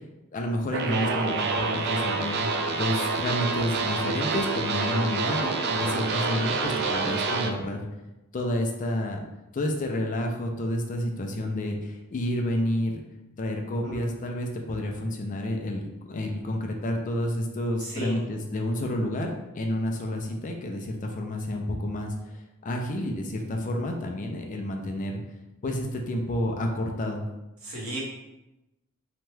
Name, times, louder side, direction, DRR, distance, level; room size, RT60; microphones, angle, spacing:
voice 1, 0.3-7.8 8.3-9.2 9.5-13.0 13.4-25.2 25.6-27.2, left 1 dB, 35° left, 2 dB, 0.4 m, -30 dB
sound 1, 0.7-7.5, right 4 dB, 50° right, 0.3 m, -27 dB
voice 2, 17.8-18.3 27.6-28.0, right 1 dB, 75° right, -5 dB, 1.0 m, -34 dB
2.9 x 2.2 x 3.1 m, 0.96 s
head